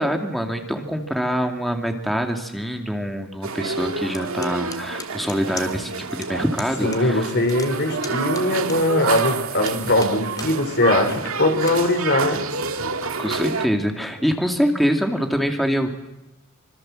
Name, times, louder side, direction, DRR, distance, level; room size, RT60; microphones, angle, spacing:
voice 1, 0.0-7.3 13.2-15.9, equal, ahead, 3 dB, 2.4 m, -24 dB
sound 1, 3.4-13.7, right 4 dB, 85° right, 2.0 m, -28 dB
sound 2, 4.1-5.9 6.2-6.3 6.6-7.0 7.3-9.2 9.6-10.5 11.0-11.1 11.6-11.8, left 4 dB, 20° left, 3.1 m, -37 dB
voice 2, 6.8-12.4, left 1 dB, 55° left, 6 dB, 5.0 m, -21 dB
26.5 x 25.5 x 7.7 m, 0.96 s
head